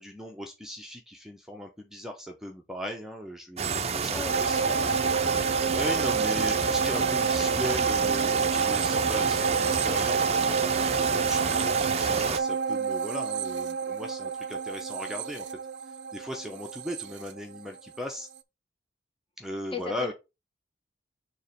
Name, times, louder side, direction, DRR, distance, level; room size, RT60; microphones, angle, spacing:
voice 1, 0.0-4.8 5.2-15.5 15.8-18.3 19.4-20.1, equal, 5° right, 0.8 m, -38 dB
sound 1, 3.6-12.4, right 5 dB, 35° right, 0.6 m, -29 dB
voice 2, 4.1-5.6 19.7-20.1, left 5 dB, 30° left, 1.3 m, -39 dB
sound 2, 4.3-18.0 18.4-18.5, right 5 dB, 80° right, 0.6 m, -29 dB
7.1 x 3.0 x 5.1 m
head